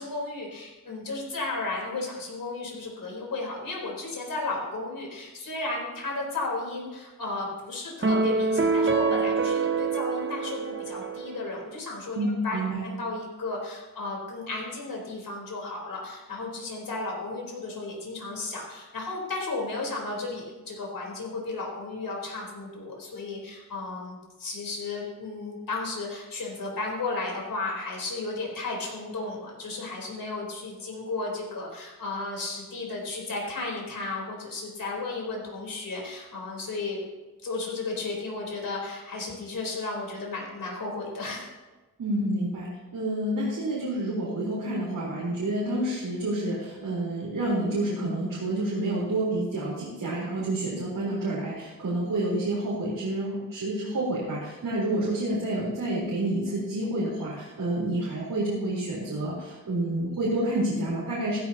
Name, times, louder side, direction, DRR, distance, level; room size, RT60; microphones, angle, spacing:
voice 1, 0.0-37.0 37.4-41.5, left 3 dB, 85° left, -2 dB, 4.2 m, -34 dB
sound 1, 8.0-11.5, right 4 dB, 35° right, 0.9 m, -26 dB
voice 2, 12.1-12.9 42.0-61.4, right 1 dB, 80° right, -7 dB, 4.2 m, -29 dB
16.0 x 14.5 x 2.9 m, 1.2 s
wide cardioid pair, 145°, 33 cm